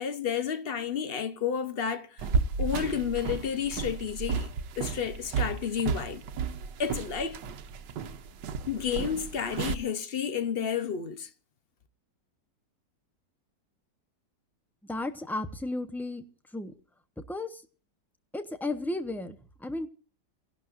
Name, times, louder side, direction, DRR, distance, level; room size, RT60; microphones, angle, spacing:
voice 1, 0.0-2.3 2.6-4.5 4.8-6.2 6.8-7.4 8.7-11.3, left 7 dB, 50° left, 0.7 m, -31 dB
sound 1, 2.2-9.8, right 5 dB, 85° right, 1.5 m, -33 dB
voice 2, 14.8-16.2 16.5-16.7 17.3-17.6 18.3-19.9, left 2 dB, ahead, 0.4 m, -34 dB
29.5 x 11.5 x 2.5 m
omnidirectional pair, 1.9 m